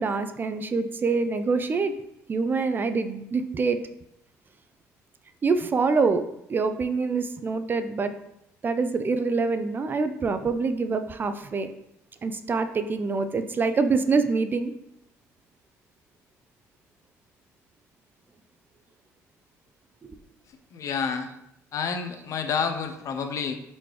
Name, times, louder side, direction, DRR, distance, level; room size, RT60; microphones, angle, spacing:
voice 1, 0.0-1.9 2.3-3.8 5.4-6.2 6.5-8.2 8.6-11.7 12.2-14.7 20.0-20.2, right 4 dB, 35° right, 9 dB, 0.3 m, -25 dB
voice 2, 20.7-21.3 21.7-23.5, left 6 dB, 60° left, 7 dB, 0.5 m, -29 dB
4.1 x 3.0 x 3.2 m, 0.81 s
supercardioid pair, 80°, 6 cm